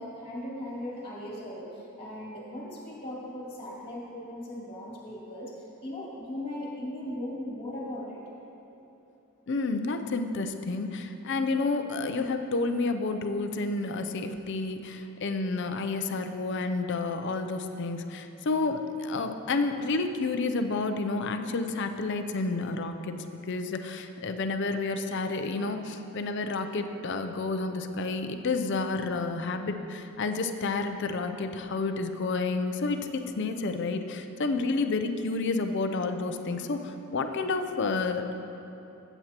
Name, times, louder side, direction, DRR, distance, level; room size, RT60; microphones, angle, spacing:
voice 1, 0.0-5.5 5.8-8.2, left 1 dB, 25° left, -5 dB, 2.2 m, -38 dB
voice 2, 9.5-38.3, left 3 dB, 50° left, 7 dB, 0.5 m, -30 dB
14.5 x 8.0 x 2.9 m, 3.0 s
head